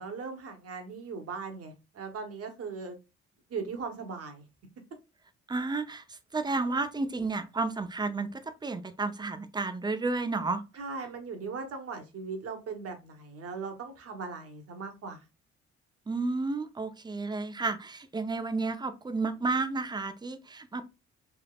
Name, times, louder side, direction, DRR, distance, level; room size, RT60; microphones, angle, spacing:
voice 1, 0.0-3.0 3.5-4.4 10.7-15.2, right 5 dB, 50° right, 1.1 m, -39 dB
voice 2, 5.5-10.6 16.1-20.8, right 3 dB, 15° right, 0.6 m, -32 dB
3.5 x 2.8 x 2.3 m
hypercardioid pair, 55°, 30 cm